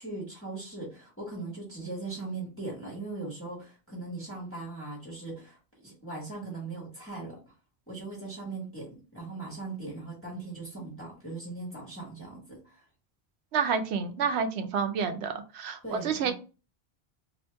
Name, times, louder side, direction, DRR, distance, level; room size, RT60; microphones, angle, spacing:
voice 1, 0.0-7.4 7.9-12.8 15.8-16.3, right 3 dB, 15° left, -4 dB, 1.2 m, -39 dB
voice 2, 13.5-16.3, right 6 dB, 85° right, 8 dB, 0.8 m, -29 dB
2.8 x 2.5 x 3.3 m, 0.34 s
omnidirectional pair, 1.1 m